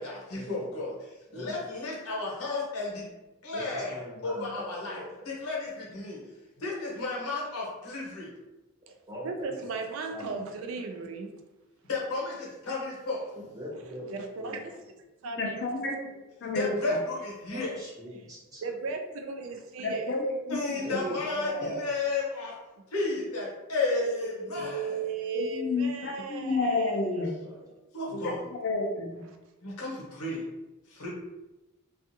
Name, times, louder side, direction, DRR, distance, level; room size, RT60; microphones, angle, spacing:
voice 1, 0.0-3.1 3.4-6.2 6.6-8.3 11.8-13.3 16.5-17.7 20.5-22.5 22.9-25.0 27.9-28.4 29.6-30.4 30.9-31.1, left 3 dB, 75° left, -5 dB, 0.9 m, -33 dB
voice 2, 3.5-5.2 9.1-9.7 10.1-10.7 13.3-14.6 17.5-18.6 20.8-22.0 27.1-27.6, equal, 15° right, -4 dB, 0.6 m, -40 dB
voice 3, 9.2-11.3 14.1-14.8 15.2-15.6 18.6-20.1 24.0-27.0 27.6-27.7, right 4 dB, 65° right, 5 dB, 0.3 m, -36 dB
voice 4, 15.3-16.1 16.4-17.0 19.8-20.2 20.5-21.0 21.6-21.7 25.3-27.3 28.2-28.3 28.6-29.2, left 3 dB, 50° left, 1 dB, 0.4 m, -30 dB
2.4 x 2.4 x 2.6 m, 1.1 s
head